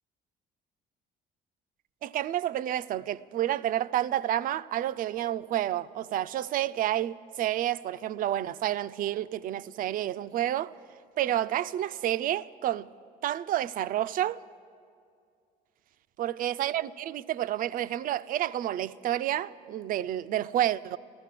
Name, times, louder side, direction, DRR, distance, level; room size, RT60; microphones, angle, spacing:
voice 1, 2.0-10.7 11.2-12.9 13.2-14.4 16.2-21.0, right 12 dB, 55° right, 0.4 m, -29 dB
14.0 x 14.0 x 7.5 m
cardioid pair, 110°, 17 cm